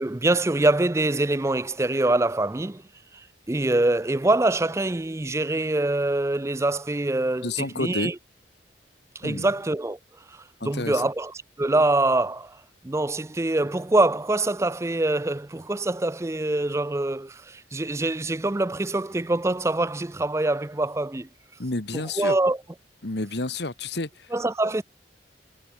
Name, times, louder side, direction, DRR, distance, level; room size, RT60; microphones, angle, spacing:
voice 1, 0.0-2.8 3.1-8.2 9.2-10.0 10.3-12.6 12.8-21.3 21.9-22.6 24.3-24.8, right 2 dB, 15° right, 0.4 m, -24 dB
voice 2, 7.4-8.1 9.2-9.5 10.6-11.0 21.6-22.4 23.0-24.3, left 2 dB, 65° left, 1.8 m, -30 dB
head